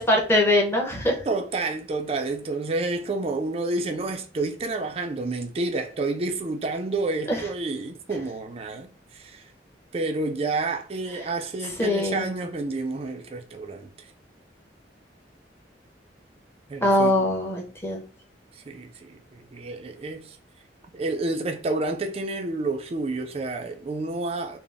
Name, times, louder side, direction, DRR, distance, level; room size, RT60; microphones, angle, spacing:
voice 1, 0.0-1.2 7.3-7.4 11.8-12.3 16.8-18.0, left 1 dB, 15° left, 0.9 m, -22 dB
voice 2, 1.3-9.4 9.9-14.1 16.7-17.2 18.5-20.4 20.9-24.6, right 3 dB, 35° right, 0.4 m, -29 dB
3.9 x 2.0 x 3.4 m
head